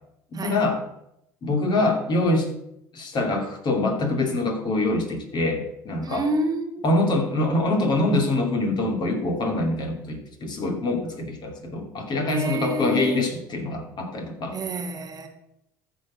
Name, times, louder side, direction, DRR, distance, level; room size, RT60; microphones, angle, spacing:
voice 1, 0.3-0.8 1.4-2.5 2.9-6.3 6.8-14.6, left 2 dB, 45° left, 3 dB, 2.7 m, -24 dB
voice 2, 6.0-6.9 12.3-13.2 14.5-15.3, right 1 dB, 40° right, 7 dB, 1.6 m, -28 dB
14.0 x 4.7 x 6.3 m, 0.79 s
hypercardioid pair, 70°, 10 cm